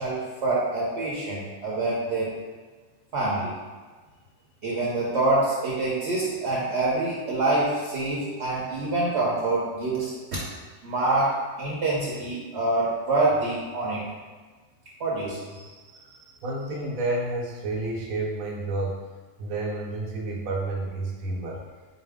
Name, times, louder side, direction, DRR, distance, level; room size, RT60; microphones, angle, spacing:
voice 1, 0.0-2.3 3.1-3.6 4.6-10.4 10.8-14.0 15.0-15.7, right 2 dB, 60° right, -5 dB, 0.9 m, -26 dB
voice 2, 16.4-19.0 19.4-21.7, right 2 dB, 85° right, -1 dB, 1.1 m, -30 dB
4.2 x 2.5 x 3.4 m, 1.4 s
omnidirectional pair, 1.4 m